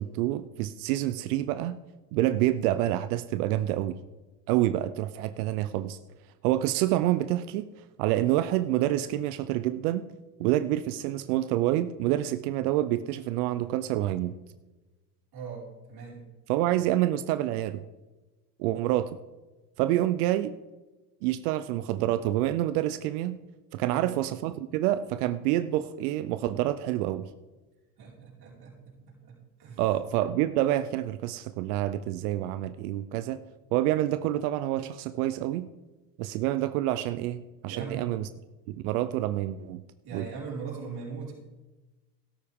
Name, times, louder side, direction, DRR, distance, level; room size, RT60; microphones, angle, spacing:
voice 1, 0.0-1.8 2.1-4.0 4.5-6.0 6.4-7.7 8.0-10.1 10.4-14.4 16.5-17.8 18.6-19.2 19.8-20.5 21.2-23.4 23.7-27.3 29.8-33.4 33.7-35.7 36.2-38.3 38.7-39.8 40.1-40.3, right 14 dB, 80° right, 13 dB, 0.6 m, -27 dB
voice 2, 15.3-16.2 23.9-24.1 28.0-29.8 37.7-38.1 40.0-41.3, right 5 dB, 55° right, -5 dB, 5.0 m, -40 dB
13.5 x 12.0 x 3.6 m, 1.2 s
hypercardioid pair, 80°, 45 cm